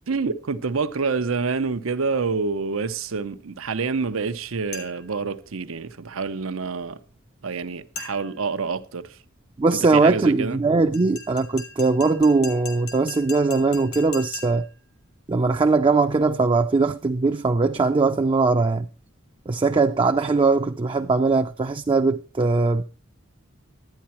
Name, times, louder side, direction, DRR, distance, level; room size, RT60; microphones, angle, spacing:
voice 1, 0.1-7.0 7.4-9.1 9.9-10.6, right 4 dB, 85° right, 0.8 m, -27 dB
sound 1, 4.7-5.2 8.0-8.5 10.9-14.8, left 4 dB, 85° left, 2.3 m, -39 dB
voice 2, 9.6-14.6 15.3-18.9 19.5-22.8, right 3 dB, 25° right, 0.4 m, -20 dB
11.5 x 9.5 x 4.3 m
head